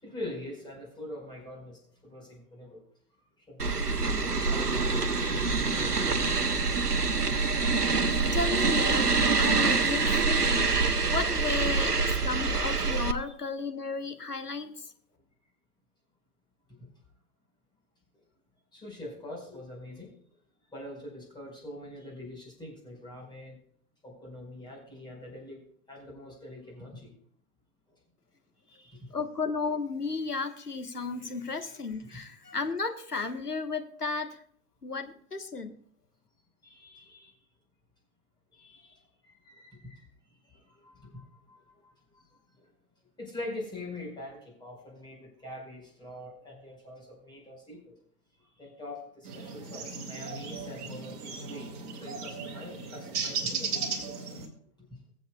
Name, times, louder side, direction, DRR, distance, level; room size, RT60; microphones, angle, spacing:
voice 1, 0.0-2.8 3.5-6.5 16.8-16.9 18.7-20.1 20.7-23.6 24.0-27.1 28.7-29.2 36.6-37.3 38.5-40.1 40.4-42.2 42.6-42.7 43.2-47.9 48.6-54.3, left 1 dB, 10° left, -2 dB, 4.9 m, -44 dB
sound 1, 3.6-13.1, right 4 dB, 90° right, 0.9 m, -26 dB
voice 2, 8.1-14.9 29.1-34.4 34.8-35.7, left 4 dB, 85° left, 7 dB, 1.4 m, -34 dB
sound 2, 49.3-54.5, right 5 dB, 30° right, 2.2 m, -36 dB
22.0 x 7.9 x 2.3 m, 0.62 s
figure-of-eight pair, 110°, 45 cm